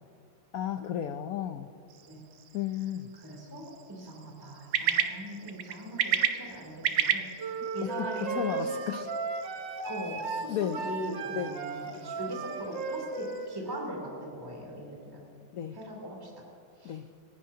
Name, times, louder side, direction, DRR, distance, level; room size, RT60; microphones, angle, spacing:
voice 1, 0.5-1.7 2.5-3.1 8.3-9.1 10.5-10.8 11.3-11.5 15.5-15.8 16.8-17.1, left 10 dB, 85° left, 8 dB, 0.7 m, -33 dB
sound 1, 1.9-13.5, right 9 dB, 80° right, 1.7 m, -35 dB
voice 2, 3.2-8.9 9.8-15.2 15.7-16.3 16.8-17.0, equal, 10° right, -3 dB, 3.1 m, -40 dB
sound 2, 7.4-13.9, right 4 dB, 65° right, 1.8 m, -36 dB
29.0 x 15.5 x 2.8 m, 2.4 s
omnidirectional pair, 2.2 m